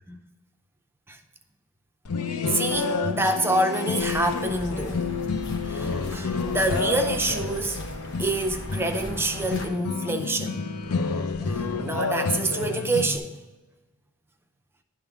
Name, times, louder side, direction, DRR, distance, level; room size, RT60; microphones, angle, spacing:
sound 1, 2.1-13.2, left 4 dB, 85° left, 0.7 m, -29 dB
voice 1, 2.5-5.0 5.7-7.8 8.2-10.6 11.4-13.3, right 2 dB, 10° right, 0.4 m, -27 dB
sound 2, 4.0-9.7, equal, 55° left, 1.2 m, -38 dB
10.5 x 3.8 x 5.7 m
head